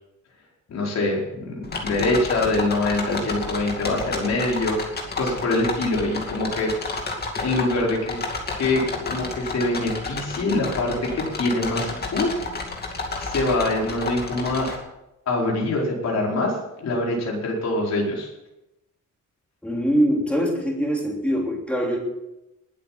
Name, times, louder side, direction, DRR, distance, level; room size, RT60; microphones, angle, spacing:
voice 1, 0.7-4.8 5.1-6.7 7.4-8.2 8.6-12.3 13.2-14.7 15.3-18.3, left 2 dB, 60° left, -2 dB, 4.7 m, -24 dB
sound 1, 1.6-14.8, left 3 dB, 30° left, 2.5 m, -31 dB
voice 2, 19.6-22.0, equal, 5° left, -1 dB, 3.1 m, -23 dB
20.5 x 8.4 x 5.9 m, 0.92 s
wide cardioid pair, 180°, 30 cm